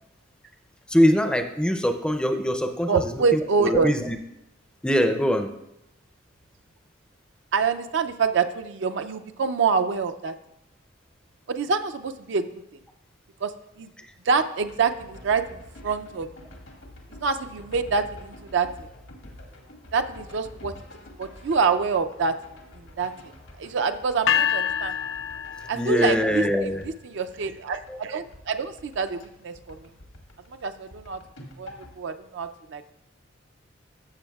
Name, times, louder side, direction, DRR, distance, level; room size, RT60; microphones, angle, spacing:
voice 1, 0.9-4.2 4.8-5.5 25.8-26.8 27.9-28.2, equal, 5° left, 7 dB, 0.4 m, -23 dB
voice 2, 2.9-3.9 7.5-10.3 11.5-12.5 13.4-13.5 13.8-13.9 14.3-16.3 17.2-18.7 19.9-20.7 21.2-22.3 23.0-23.1 23.6-24.9 25.7-26.7 27.0-29.8 30.6-31.2 31.6-32.9, right 5 dB, 65° right, 9 dB, 0.4 m, -26 dB
sound 1, 14.6-29.3 29.5-32.0, left 1 dB, 85° left, 1.6 m, -47 dB
sound 2, 24.3-26.4, left 8 dB, 70° left, 0.3 m, -26 dB
13.0 x 6.9 x 2.3 m, 0.85 s
head